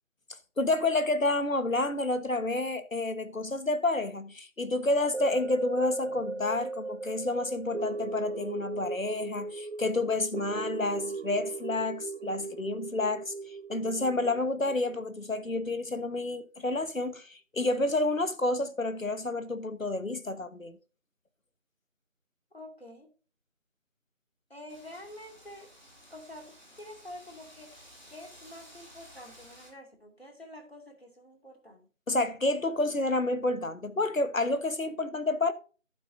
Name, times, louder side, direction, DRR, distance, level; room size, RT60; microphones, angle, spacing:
voice 1, 0.6-20.8 32.1-35.5, left 2 dB, 85° left, 1.4 m, -29 dB
sound 1, 5.1-15.5 16.0-16.1, right 3 dB, 60° right, 0.5 m, -37 dB
voice 2, 22.5-23.1 24.5-25.7 26.1-31.9, left 1 dB, 50° left, 2.6 m, -48 dB
Wind, 24.7-29.7, equal, 35° left, 3.0 m, -54 dB
11.5 x 9.3 x 2.7 m
figure-of-eight pair, 180°, 39 cm